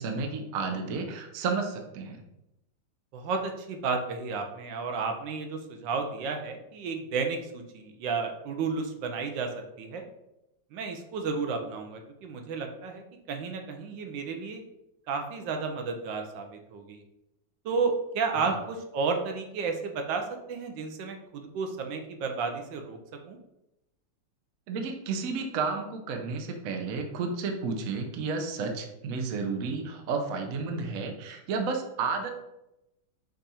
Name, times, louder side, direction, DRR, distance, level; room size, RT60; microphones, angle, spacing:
voice 1, 0.0-2.2 18.4-18.5 24.7-32.3, right 4 dB, 60° right, 4 dB, 0.9 m, -32 dB
voice 2, 3.1-10.0 10.7-14.6 15.1-17.0 17.6-23.0 23.3-23.4, right 4 dB, 85° right, 4 dB, 1.4 m, -32 dB
5.2 x 2.5 x 4.1 m, 0.88 s
omnidirectional pair, 2.0 m